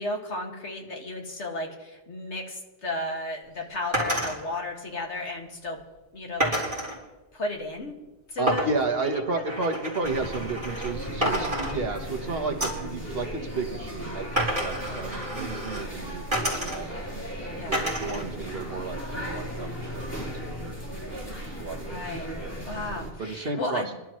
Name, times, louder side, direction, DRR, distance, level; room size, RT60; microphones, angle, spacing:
voice 1, 0.0-5.8 6.1-6.5 7.3-7.9 8.3-8.7 9.0-9.6 14.8-15.0 17.5-17.9 21.8-22.3 22.6-23.9, left 2 dB, 75° left, 1 dB, 2.3 m, -34 dB
sound 1, 3.9-4.4 6.4-7.0 8.5-10.9 11.2-12.2 12.6-12.9 14.4-15.8 16.3-17.1 17.7-18.3 18.6-19.4, right 1 dB, 30° right, 4.5 m, -30 dB
voice 2, 8.4-14.3 14.6-16.9 17.7-21.2 21.6-22.0 23.2-23.8, right 3 dB, 55° right, 3 dB, 1.5 m, -32 dB
sound 2, 10.0-23.1, equal, 10° left, 3.9 m, -36 dB
26.0 x 12.0 x 3.1 m, 1.1 s
omnidirectional pair, 1.2 m